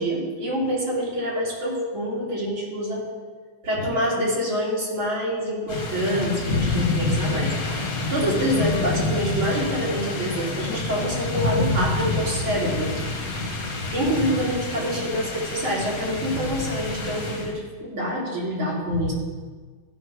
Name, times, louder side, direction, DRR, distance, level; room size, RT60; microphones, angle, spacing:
voice 1, 0.0-3.0 3.6-7.6 8.1-12.9 13.9-19.1, equal, 75° right, -6 dB, 3.8 m, -26 dB
sound 1, 5.7-17.5, left 2 dB, 45° left, 1.8 m, -28 dB
sound 2, 6.1-12.3, left 7 dB, 75° left, 1.4 m, -37 dB
15.0 x 5.8 x 4.8 m, 1.5 s
omnidirectional pair, 2.3 m